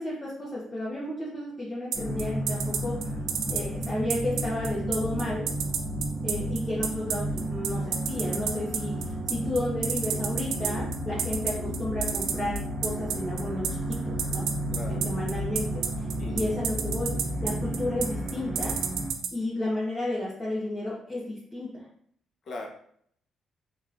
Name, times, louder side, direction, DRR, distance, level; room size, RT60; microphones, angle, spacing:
voice 1, 0.0-3.0 3.5-5.5 6.2-14.5 14.9-18.8 19.3-21.9, left 1 dB, 25° left, -7 dB, 1.0 m, -32 dB
sound 1, 1.9-19.1, right 1 dB, 20° right, 0.9 m, -32 dB
sound 2, 1.9-19.3, right 8 dB, 80° right, 0.4 m, -29 dB
voice 2, 14.7-15.3 16.2-16.5 22.5-22.7, left 2 dB, 50° left, 1 dB, 0.8 m, -40 dB
3.6 x 3.0 x 2.5 m, 0.64 s
cardioid pair, 90°, 0 cm